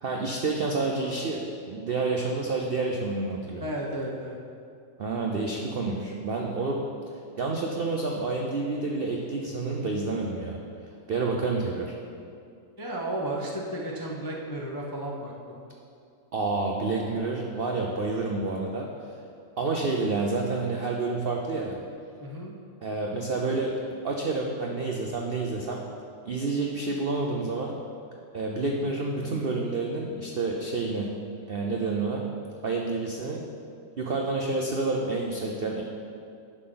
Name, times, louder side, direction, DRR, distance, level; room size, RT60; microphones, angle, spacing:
voice 1, 0.0-3.6 5.0-6.8 7.4-10.6 11.1-11.9 16.3-18.9 19.6-21.8 22.8-23.7 24.0-25.8 26.3-27.8 28.3-31.1 31.5-32.2 32.6-33.4 34.0-35.8, right 3 dB, 75° right, 0 dB, 0.5 m, -29 dB
voice 2, 3.6-4.4 12.8-15.6 22.2-22.5, right 1 dB, 35° left, -3 dB, 0.3 m, -33 dB
9.9 x 6.4 x 3.9 m, 2.5 s
omnidirectional pair, 1.8 m